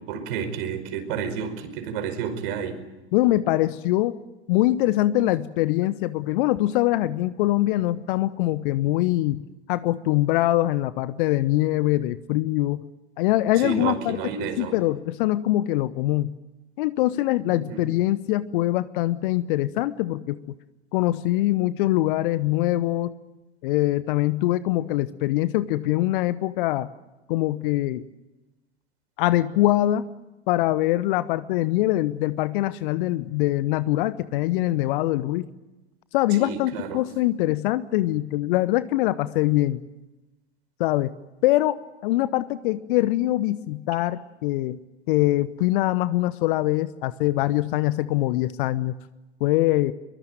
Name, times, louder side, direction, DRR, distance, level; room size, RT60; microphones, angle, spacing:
voice 1, 0.1-2.8 13.6-14.7 17.5-17.9 36.4-37.0, right 7 dB, 55° right, 8 dB, 5.2 m, -30 dB
voice 2, 3.1-4.2 4.5-9.4 9.7-12.8 13.2-16.3 16.8-20.4 20.9-23.1 23.6-26.9 27.3-28.1 29.2-30.0 30.5-35.5 36.1-39.8 40.8-41.1 41.4-44.8 45.1-49.0 49.4-49.9, left 16 dB, 50° left, 16 dB, 1.0 m, -23 dB
23.5 x 23.0 x 9.3 m, 1.0 s
figure-of-eight pair, 90°, 34 cm